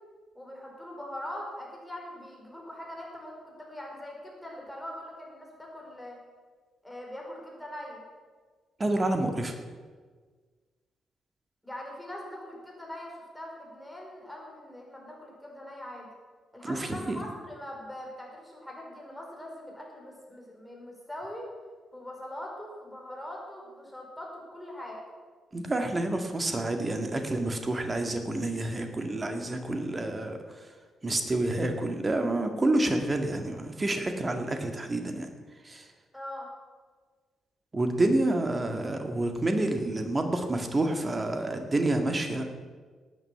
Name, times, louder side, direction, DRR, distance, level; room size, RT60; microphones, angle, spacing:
voice 1, 0.4-6.2 6.8-8.0 11.6-16.1 16.5-21.5 21.9-25.0 36.1-36.5, left 1 dB, 5° left, -2 dB, 5.1 m, -42 dB
voice 2, 8.8-9.6 16.7-17.2 25.5-30.4 31.0-35.3 35.6-35.8 37.7-42.4, right 2 dB, 25° right, 5 dB, 1.9 m, -28 dB
18.0 x 9.5 x 5.8 m, 1.5 s
figure-of-eight pair, 40°, 0 cm